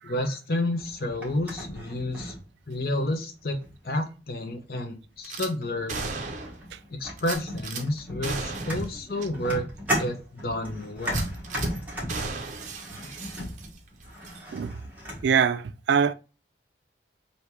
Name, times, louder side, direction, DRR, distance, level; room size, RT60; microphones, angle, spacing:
voice 1, 0.0-2.3 2.7-3.6 3.8-6.0 6.9-9.7 10.0-10.2 10.4-11.3 13.4-13.5, left 1 dB, 55° left, 0.6 m, -30 dB
sound 1, 0.8-3.0 3.5-3.9 5.0-5.1 5.6-5.8 6.1-15.3, equal, 10° right, 1.3 m, -36 dB
Gunshot gunfire / Glass, 5.2-5.5 5.9-6.7 7.2-7.8 8.2-8.9 9.2-9.3 9.8-9.9 11.0-11.7 12.1-13.9 14.2-14.4, right 4 dB, 40° right, 0.6 m, -35 dB
voice 2, 15.2-16.1, right 7 dB, 75° right, 0.3 m, -24 dB
3.3 x 2.8 x 4.3 m
head